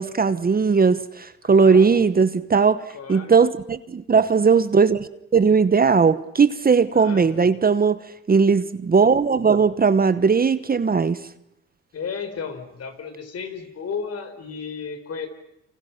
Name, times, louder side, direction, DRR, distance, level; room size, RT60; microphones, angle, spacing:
voice 1, 0.0-2.8 3.1-8.0 8.3-11.2, right 5 dB, 30° right, 1.0 m, -18 dB
voice 2, 1.4-2.0 2.9-3.3 6.9-7.6 11.9-15.3, left 6 dB, 55° left, 4.5 m, -34 dB
29.0 x 27.0 x 5.9 m
cardioid pair, 90°, 30 cm